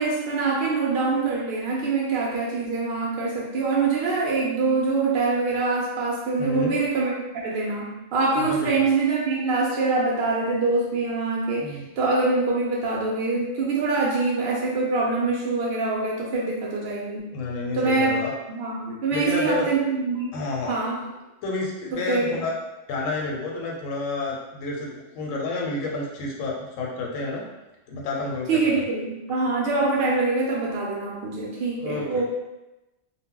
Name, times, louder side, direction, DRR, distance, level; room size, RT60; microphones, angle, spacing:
voice 1, 0.0-17.3 17.7-18.1 18.5-20.4 20.7-21.0 21.9-22.4 28.5-32.2, right 3 dB, 65° right, -3 dB, 0.6 m, -24 dB
voice 2, 6.4-6.7 8.4-8.7 11.6-11.8 17.3-18.3 19.1-19.6 20.3-20.8 21.4-22.5 22.9-27.4 27.9-28.5 31.8-32.2, left 3 dB, 85° left, -2 dB, 1.0 m, -29 dB
2.2 x 2.0 x 3.6 m, 0.99 s
omnidirectional pair, 1.3 m